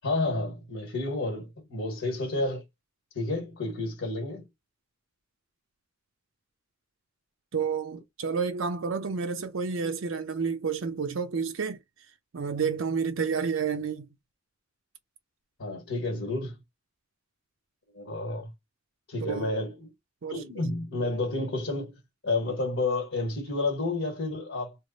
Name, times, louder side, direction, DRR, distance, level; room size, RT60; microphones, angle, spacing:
voice 1, 0.0-2.6 3.1-4.5 15.6-16.6 17.9-18.5 19.1-19.9 20.3-24.8, left 2 dB, 60° left, 1.3 m, -30 dB
voice 2, 7.5-11.8 12.3-14.1 19.2-19.5 20.2-20.4, right 5 dB, 70° right, 0.5 m, -30 dB
3.2 x 2.0 x 3.8 m
head